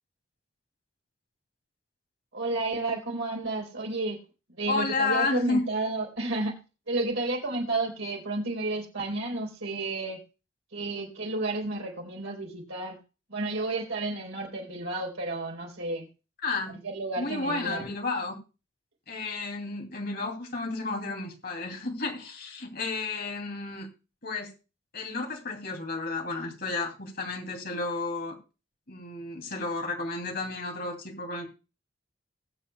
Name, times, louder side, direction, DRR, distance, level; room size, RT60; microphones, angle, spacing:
voice 1, 2.3-4.2 4.5-10.2 10.7-13.0 13.3-16.1 16.7-17.9, right 2 dB, 85° right, 3.8 m, -31 dB
voice 2, 4.7-5.6 16.4-16.7 17.2-18.3 19.1-23.9 24.2-24.5 24.9-28.4 28.9-31.5, left 3 dB, 50° left, 2.8 m, -32 dB
20.5 x 7.9 x 2.3 m
head